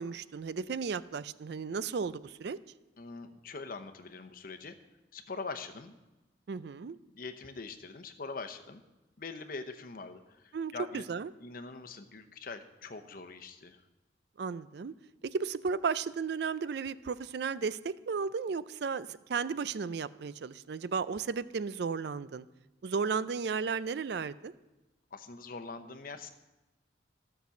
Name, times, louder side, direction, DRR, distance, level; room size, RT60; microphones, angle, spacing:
voice 1, 0.0-2.6 6.5-7.0 10.5-11.3 14.4-14.9 15.2-22.5 22.8-24.5, right 5 dB, 60° right, 16 dB, 0.4 m, -34 dB
voice 2, 3.0-4.7 5.1-6.0 7.1-8.8 9.2-11.0 11.4-13.8 25.1-26.3, left 4 dB, 50° left, 7 dB, 0.8 m, -43 dB
13.0 x 6.0 x 7.0 m, 1.1 s
head